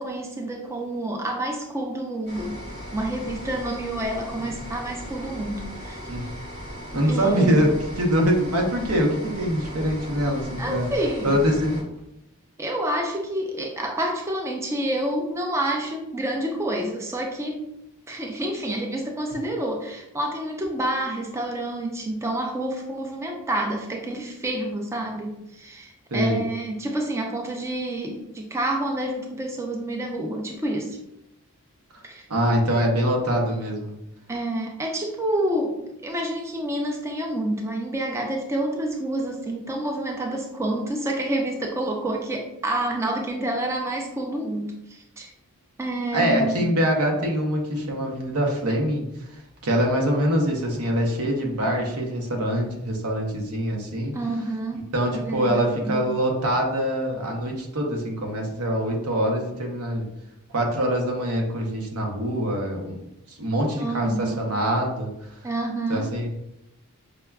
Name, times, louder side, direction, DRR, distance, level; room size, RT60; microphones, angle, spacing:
voice 1, 0.0-2.6 2.9-6.0 7.1-7.6 10.6-11.4 12.6-17.6 18.1-31.0 32.0-32.2 34.3-45.3 45.8-46.7 54.1-56.1 63.8-64.5 65.4-66.1, right 1 dB, 10° right, 1 dB, 0.3 m, -28 dB
sound 1, 2.3-11.8, equal, 35° right, 0.8 m, -37 dB
voice 2, 6.9-10.9 11.2-11.8 26.1-26.4 32.3-33.9 46.1-49.0 49.3-54.1 54.9-60.1 60.5-65.1 65.9-66.3, equal, 90° right, 1 dB, 0.8 m, -24 dB
5.0 x 2.3 x 2.3 m, 0.84 s
head